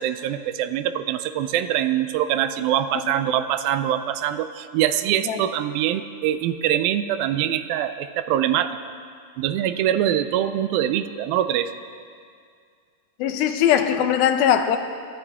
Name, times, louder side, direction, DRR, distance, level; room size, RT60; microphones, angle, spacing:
voice 1, 0.0-8.8 9.4-11.7, right 11 dB, 80° right, 11 dB, 2.4 m, -23 dB
voice 2, 13.2-14.8, left 9 dB, 80° left, 8 dB, 2.6 m, -20 dB
22.5 x 13.5 x 3.5 m, 2.2 s
omnidirectional pair, 4.3 m